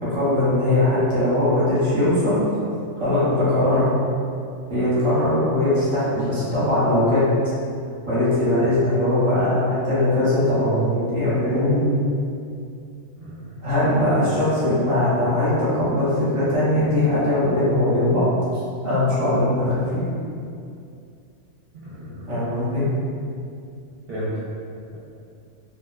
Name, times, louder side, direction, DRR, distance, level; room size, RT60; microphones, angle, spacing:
voice 1, 0.0-2.4 3.0-3.9 4.7-7.2 8.1-11.8 13.6-18.3 18.5-20.1 22.3-22.8, left 1 dB, 30° right, -11 dB, 0.8 m, -20 dB
voice 2, 13.1-13.6 14.0-14.2 21.8-22.3 24.1-24.4, equal, 60° right, -11 dB, 0.8 m, -33 dB
2.5 x 2.2 x 2.3 m, 2.4 s
omnidirectional pair, 1.3 m